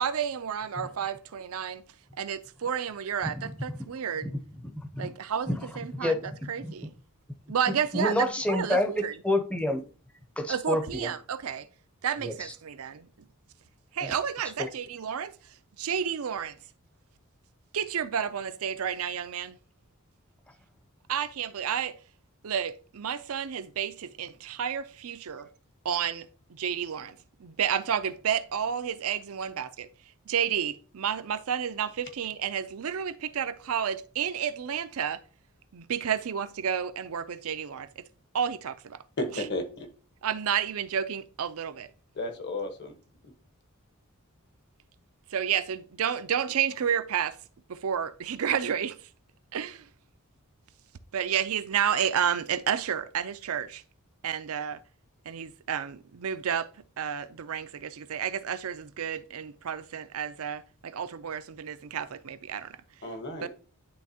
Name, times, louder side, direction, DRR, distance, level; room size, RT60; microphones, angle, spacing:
voice 1, 0.0-1.8 2.2-4.3 5.0-6.2 6.5-6.9 7.5-9.1 10.5-11.7 12.0-13.1 13.9-15.4 15.8-16.6 17.7-19.6 21.1-22.0 22.4-25.5 25.8-29.9 30.3-35.2 35.7-38.0 38.3-39.0 40.2-41.9 45.3-47.4 47.7-49.0 49.5-49.8 51.1-53.8 54.2-54.8 55.3-56.7 57.0-62.8 63.4-63.5, right 8 dB, 75° right, 0.5 m, -31 dB
voice 2, 4.6-5.1 5.5-5.6 6.0-6.7 7.7-9.8 10.4-11.1 12.2-12.5 14.0-14.1 14.6-14.7, left 1 dB, 5° left, 0.6 m, -29 dB
voice 3, 39.2-39.9 42.1-43.0 43.2-43.3 63.0-63.5, left 2 dB, 50° left, 1.2 m, -33 dB
10.5 x 3.5 x 2.8 m
head